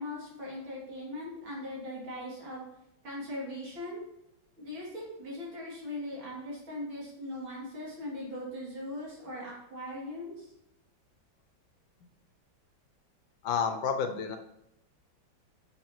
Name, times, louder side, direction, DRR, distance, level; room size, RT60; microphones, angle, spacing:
voice 1, 0.0-2.6 3.0-4.0 4.6-10.5, left 1 dB, 80° right, -5 dB, 3.6 m, -40 dB
voice 2, 13.4-14.4, left 6 dB, 75° left, 6 dB, 1.6 m, -30 dB
9.9 x 7.2 x 3.1 m, 0.84 s
omnidirectional pair, 2.1 m